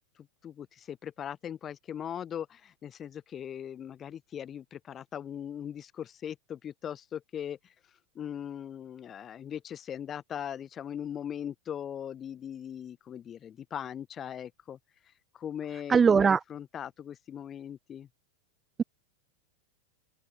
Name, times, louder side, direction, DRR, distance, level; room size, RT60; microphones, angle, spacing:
voice 1, 0.4-7.7 8.1-14.8 15.3-18.1, left 9 dB, 30° left, 7.7 m, -39 dB
voice 2, 15.9-16.4, right 6 dB, 20° right, 1.0 m, -20 dB
open air
figure-of-eight pair, 95°, 0 cm